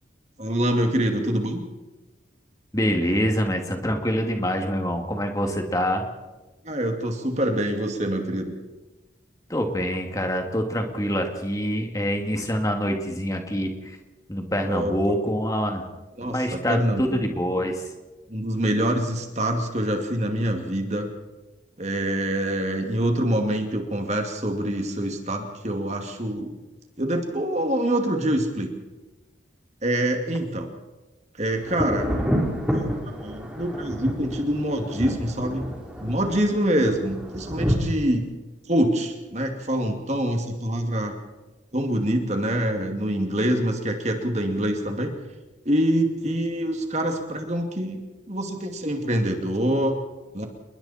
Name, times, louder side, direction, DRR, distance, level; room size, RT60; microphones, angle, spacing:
voice 1, 0.4-1.6 6.6-8.5 14.6-15.2 16.2-17.2 18.3-21.1 21.8-26.5 27.0-28.7 29.8-30.7 31.4-32.1 32.7-32.8 33.0-35.7 36.0-38.2 38.7-41.1 41.7-45.1 45.7-50.0 50.3-50.5, right 1 dB, 35° right, 4 dB, 2.5 m, -25 dB
voice 2, 2.7-6.0 9.5-14.0 14.3-15.8 16.2-17.8, equal, 20° left, 3 dB, 2.5 m, -25 dB
Thunder, 31.6-37.8, equal, 5° right, 3.7 m, -28 dB
28.5 x 21.5 x 4.4 m, 1.1 s
head